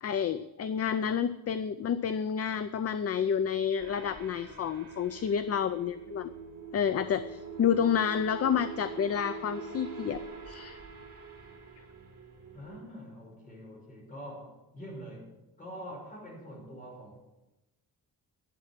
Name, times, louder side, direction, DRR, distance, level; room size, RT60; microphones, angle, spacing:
voice 1, 0.0-6.3 6.7-10.2 10.5-10.8, left 7 dB, 40° left, 12 dB, 0.5 m, -29 dB
sound 1, 3.8-12.8, right 4 dB, 35° right, 3.5 m, -44 dB
voice 2, 12.5-15.3 15.6-17.2, equal, 20° left, -2 dB, 5.5 m, -45 dB
12.0 x 8.9 x 7.4 m, 0.99 s
wide cardioid pair, 175°, 39 cm